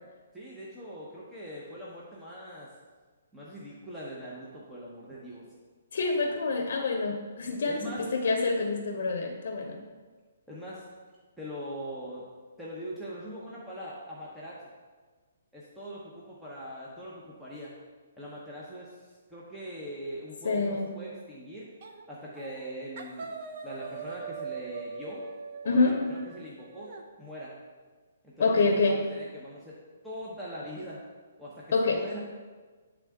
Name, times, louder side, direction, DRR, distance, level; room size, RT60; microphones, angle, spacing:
voice 1, 0.3-2.7 3.3-5.5 7.6-8.1 10.5-10.8 11.4-12.2 12.6-14.6 15.5-17.8 18.2-19.0 19.3-21.7 22.1-23.3 23.6-25.2 25.6-26.9 27.2-27.6 28.2-28.5 28.8-29.8 30.0-31.0 31.4-32.2, equal, 5° right, -8 dB, 0.8 m, -41 dB
voice 2, 5.9-9.8 20.4-20.9 25.6-26.0 28.4-29.0 31.7-32.0, left 3 dB, 65° left, 3 dB, 0.7 m, -26 dB
sound 1, 21.8-22.1 22.3-22.7 23.0-27.0, right 5 dB, 50° right, 0.7 m, -41 dB
9.6 x 3.6 x 3.5 m, 1.4 s
hypercardioid pair, 160°, 0 cm